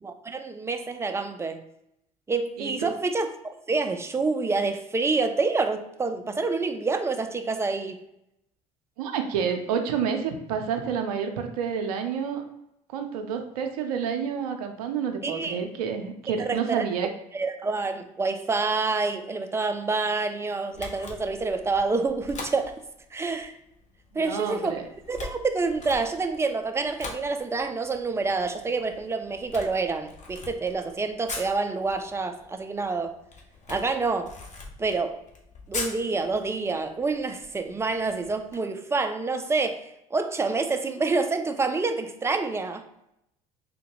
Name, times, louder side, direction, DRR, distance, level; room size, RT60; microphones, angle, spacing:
voice 1, 0.0-1.6 2.3-8.0 15.2-15.6 16.4-16.8 17.3-22.7 23.1-23.5 24.1-24.8 25.1-33.1 33.7-34.3 34.8-35.2 35.7-42.9, right 3 dB, 15° right, 7 dB, 0.4 m, -27 dB
voice 2, 2.6-2.9 9.0-12.4 12.9-17.1 24.1-24.8, right 7 dB, 85° right, 5 dB, 0.5 m, -29 dB
Camera, 20.7-38.6, left 3 dB, 40° left, 0.8 m, -43 dB
3.5 x 2.1 x 3.0 m, 0.81 s
hypercardioid pair, 65°, 19 cm